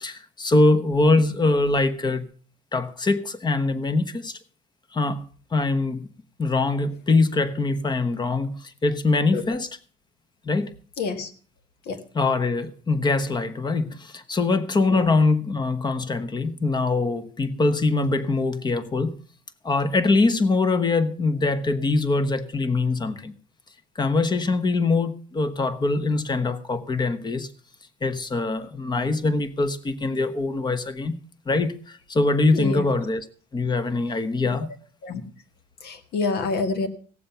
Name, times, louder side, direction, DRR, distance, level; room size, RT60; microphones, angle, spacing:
voice 1, 0.0-2.3 2.7-4.4 4.9-5.3 5.5-6.1 6.4-9.7 10.4-10.7 12.1-19.2 19.6-23.3 24.0-27.5 28.0-31.1 31.5-33.2 33.5-34.7, left 3 dB, 25° left, 1.0 m, -23 dB
voice 2, 11.0-11.3 11.9-12.0 14.9-15.1 32.5-32.8 35.0-35.2 35.8-36.9, left 4 dB, 70° left, 1.7 m, -27 dB
17.0 x 7.4 x 5.8 m
cardioid pair, 110°, 17 cm